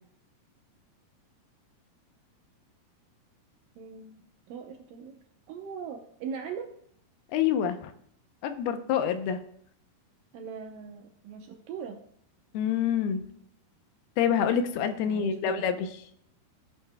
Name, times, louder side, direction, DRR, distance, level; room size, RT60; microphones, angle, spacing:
voice 1, 3.8-6.7 10.3-12.0 15.0-15.7, right 6 dB, 75° right, 4 dB, 2.2 m, -40 dB
voice 2, 7.3-7.9 8.4-9.4 12.5-13.2 14.2-15.8, left 8 dB, 80° left, 8 dB, 2.6 m, -26 dB
16.5 x 8.2 x 2.2 m, 0.66 s
omnidirectional pair, 4.6 m